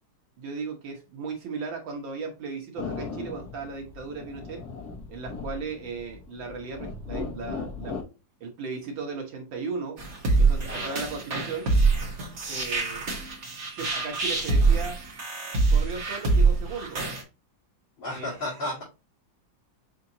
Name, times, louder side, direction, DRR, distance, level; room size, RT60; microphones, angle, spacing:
voice 1, 0.4-4.6 5.1-8.0 8.4-10.0 10.4-11.7 12.5-13.0 13.7-15.0 15.7-17.0 18.1-18.7, right 4 dB, 85° right, 2 dB, 2.0 m, -36 dB
sound 1, 2.8-8.0, left 4 dB, 65° left, 1.3 m, -37 dB
sound 2, 10.0-17.2, right 3 dB, 40° right, 1.4 m, -24 dB
voice 2, 10.6-11.0 18.0-18.8, left 1 dB, 80° left, -8 dB, 3.0 m, -33 dB
6.7 x 2.8 x 2.7 m, 0.29 s
omnidirectional pair, 2.0 m